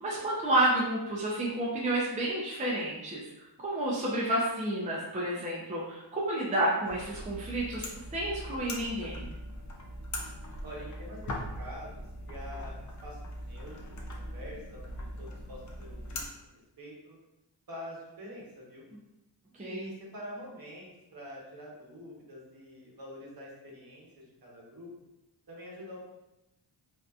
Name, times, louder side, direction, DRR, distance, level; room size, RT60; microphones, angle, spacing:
voice 1, 0.0-3.2 3.6-9.3 19.6-19.9, right 1 dB, 15° right, -5 dB, 0.5 m, -30 dB
sound 1, 6.8-16.3, left 1 dB, 40° left, 0.5 m, -41 dB
voice 2, 10.6-12.7 13.0-16.2 16.8-17.2 17.7-18.9 19.6-24.9 25.5-26.0, equal, 50° right, -4 dB, 0.9 m, -46 dB
2.6 x 2.2 x 2.4 m, 0.92 s
cardioid pair, 70°, 47 cm